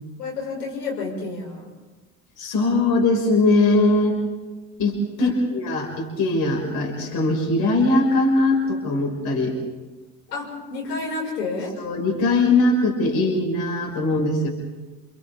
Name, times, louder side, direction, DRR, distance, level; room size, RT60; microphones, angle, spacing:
voice 1, 0.2-1.7 5.2-5.4 10.3-11.8, left 3 dB, 75° left, -2 dB, 6.0 m, -30 dB
voice 2, 2.4-4.2 4.8-9.6 11.8-14.5, left 2 dB, 45° left, 1 dB, 5.7 m, -21 dB
29.5 x 29.0 x 3.7 m, 1.2 s
figure-of-eight pair, 65°, 49 cm